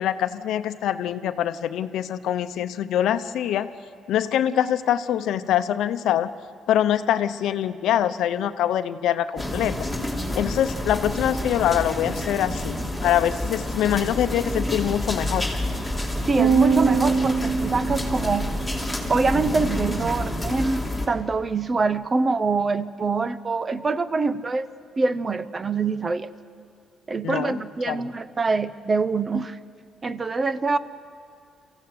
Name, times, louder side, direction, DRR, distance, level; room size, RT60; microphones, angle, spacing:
voice 1, 0.0-3.7 4.1-6.3 6.7-9.7 10.4-15.5 27.2-27.6 27.9-28.0, left 10 dB, 80° left, 11 dB, 0.8 m, -24 dB
sound 1, 9.4-21.1, left 1 dB, ahead, 3.2 m, -29 dB
voice 2, 16.3-18.5 19.1-24.7 25.0-26.3 27.1-29.6 30.0-30.8, right 4 dB, 35° right, 14 dB, 0.8 m, -24 dB
sound 2, 16.4-18.8, right 5 dB, 80° right, 0.8 m, -23 dB
24.0 x 15.0 x 8.0 m, 2.6 s
cardioid pair, 90°, 0 cm